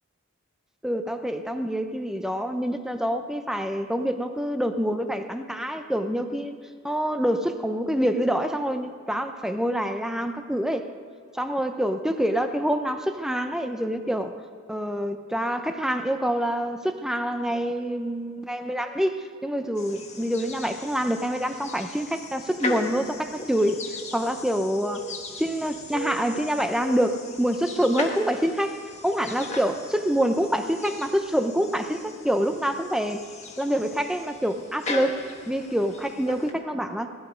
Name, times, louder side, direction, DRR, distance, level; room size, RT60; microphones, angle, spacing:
voice 1, 0.8-6.5 6.8-10.9 11.3-14.3 14.7-23.8 24.1-25.1 25.4-33.2 33.6-37.1, equal, 5° right, 7 dB, 0.7 m, -26 dB
sound 1, 19.7-36.5, left 2 dB, 35° left, 1.4 m, -38 dB
17.5 x 12.0 x 5.1 m, 2.2 s
head